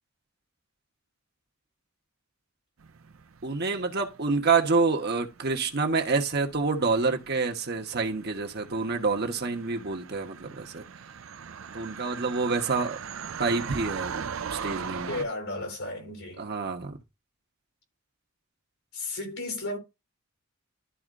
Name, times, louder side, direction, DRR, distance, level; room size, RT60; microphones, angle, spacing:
sound 1, 2.8-15.3, right 7 dB, 70° right, 0.5 m, -40 dB
voice 1, 3.4-10.8 11.7-13.0 13.4-15.2 16.4-17.0, right 4 dB, 50° right, 1.2 m, -27 dB
voice 2, 15.1-16.4 18.9-19.8, left 2 dB, 85° left, 3.4 m, -34 dB
12.5 x 4.3 x 2.5 m
head